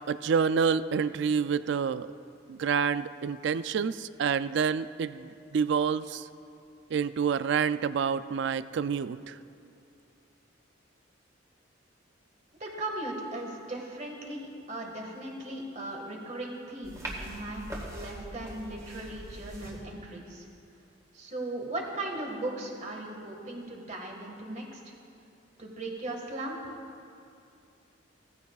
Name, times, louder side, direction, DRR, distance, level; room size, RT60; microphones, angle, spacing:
voice 1, 0.1-2.1 2.5-6.3 6.9-9.3, right 6 dB, 60° right, 14 dB, 0.3 m, -28 dB
voice 2, 12.6-20.5 21.1-24.9 25.6-26.8, right 2 dB, 35° right, 0 dB, 1.7 m, -38 dB
sound 1, 16.8-19.8, right 1 dB, 15° right, 1.7 m, -41 dB
17.0 x 14.5 x 2.4 m, 2.5 s
head